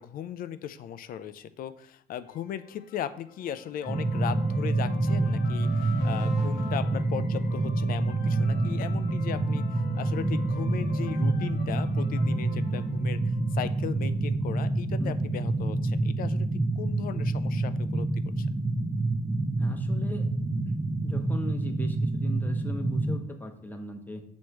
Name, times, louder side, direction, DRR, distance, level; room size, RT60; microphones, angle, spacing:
voice 1, 0.0-13.2 13.5-18.5, left 10 dB, 55° left, 13 dB, 0.5 m, -37 dB
sound 1, 2.2-14.0, left 4 dB, 80° left, 0.9 m, -45 dB
sound 2, 3.9-23.2, right 2 dB, 20° right, 0.6 m, -27 dB
voice 2, 15.0-15.4 19.6-20.3 20.6-20.7 21.0-24.2, left 1 dB, 10° left, 5 dB, 0.9 m, -38 dB
6.2 x 3.2 x 5.6 m, 0.65 s
cardioid pair, 110°, 17 cm